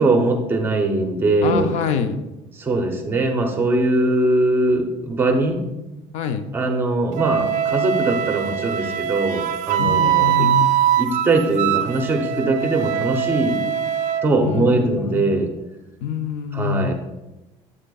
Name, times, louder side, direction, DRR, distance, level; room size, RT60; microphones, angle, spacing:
voice 1, 0.0-1.7 2.6-5.6 6.5-10.5 11.0-13.6 14.2-15.5 16.5-16.9, right 2 dB, 15° right, 3 dB, 0.8 m, -21 dB
voice 2, 1.4-2.2 6.1-6.5 9.8-10.8 14.4-15.2 16.0-16.9, left 7 dB, 60° left, 9 dB, 0.6 m, -25 dB
Wind instrument woodwind instrument, 7.1-14.2, right 10 dB, 70° right, 0.5 m, -22 dB
8.5 x 7.7 x 2.3 m, 1.0 s
cardioid pair, 165°, 13 cm